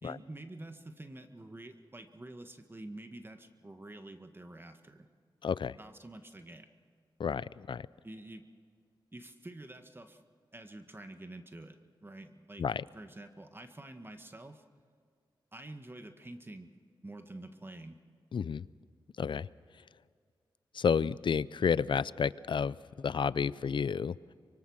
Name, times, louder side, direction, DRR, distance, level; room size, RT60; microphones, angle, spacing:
voice 1, 0.0-5.1 5.8-6.7 8.0-8.4 9.1-10.2 10.5-12.6 12.9-14.6 15.5-16.7 17.0-18.0, right 2 dB, 25° right, 7 dB, 1.6 m, -48 dB
voice 2, 5.4-5.8 7.2-7.9 12.6-12.8 18.3-18.6 19.2-19.5 20.7-24.2, left 6 dB, 65° left, 19 dB, 0.5 m, -31 dB
25.0 x 23.0 x 6.4 m, 2.1 s
cardioid pair, 60°, 9 cm